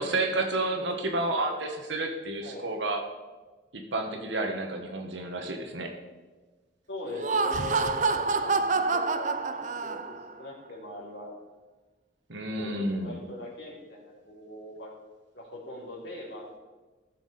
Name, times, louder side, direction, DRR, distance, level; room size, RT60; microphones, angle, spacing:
voice 1, 0.0-3.0 3.7-5.9 12.3-13.2, right 2 dB, 70° right, 4 dB, 1.5 m, -30 dB
voice 2, 2.4-2.7 6.9-11.3 12.5-14.9 15.3-16.5, left 1 dB, 65° left, -5 dB, 3.3 m, -41 dB
Laughter, 7.0-10.3, right 4 dB, 40° right, 0.5 m, -27 dB
15.0 x 7.2 x 4.3 m, 1.3 s
head